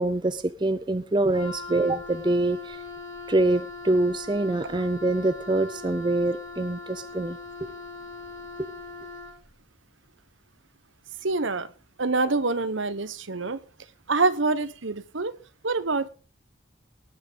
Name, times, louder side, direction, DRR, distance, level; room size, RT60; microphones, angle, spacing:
voice 1, 0.0-2.8 3.3-7.4 8.6-8.7, right 2 dB, 20° right, 0.5 m, -25 dB
Wind instrument woodwind instrument, 1.3-9.4, left 3 dB, 75° left, 6.7 m, -40 dB
voice 2, 11.2-11.7 12.0-13.6 14.1-15.3 15.6-16.1, right 3 dB, 70° right, 1.1 m, -26 dB
18.5 x 6.2 x 5.2 m
head